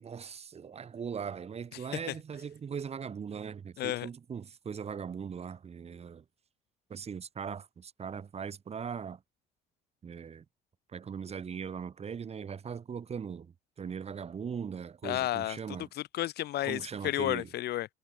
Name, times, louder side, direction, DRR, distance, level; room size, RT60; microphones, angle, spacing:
voice 1, 0.0-6.2 6.9-9.2 10.0-10.4 10.9-15.9 16.6-17.5, right 7 dB, 40° right, 4.9 m, -40 dB
voice 2, 3.8-4.1 15.0-15.6 16.0-17.9, left 14 dB, 75° left, 6.4 m, -32 dB
cardioid pair, 110°, 17 cm